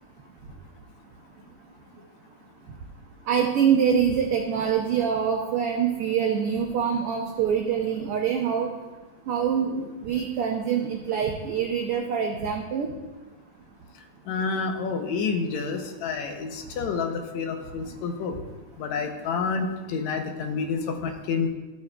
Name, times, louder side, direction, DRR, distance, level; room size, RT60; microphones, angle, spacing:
voice 1, 3.3-8.7 9.3-12.9 20.6-20.7, right 7 dB, 80° right, 1 dB, 1.2 m, -25 dB
voice 2, 14.3-18.4 18.8-21.5, left 5 dB, 75° left, 5 dB, 1.9 m, -29 dB
14.0 x 7.3 x 2.2 m, 1.2 s
omnidirectional pair, 3.5 m